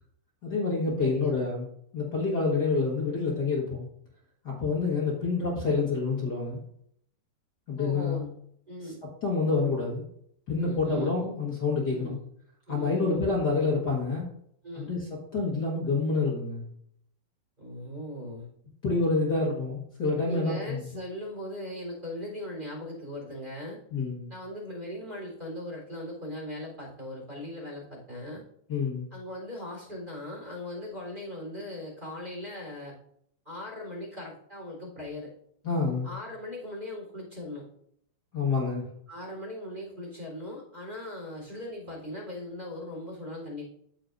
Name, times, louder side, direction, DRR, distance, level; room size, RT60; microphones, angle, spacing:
voice 1, 0.4-1.7 1.9-3.9 4.4-6.6 7.7-8.3 9.2-10.0 10.5-12.2 12.7-14.2 14.8-15.0 15.3-16.6 18.8-20.8 23.9-24.3 28.7-29.1 35.6-36.1 38.3-38.8, left 4 dB, 70° left, -2 dB, 0.9 m, -27 dB
voice 2, 1.0-1.3 7.8-8.3 8.7-9.0 10.6-11.3 11.9-12.2 12.7-13.2 14.6-14.9 17.6-18.5 20.2-23.8 24.3-28.4 29.1-32.9 33.4-35.3 36.0-37.7 39.1-43.6, left 1 dB, 15° right, -2 dB, 3.3 m, -39 dB
13.0 x 6.6 x 2.5 m, 0.69 s
omnidirectional pair, 4.1 m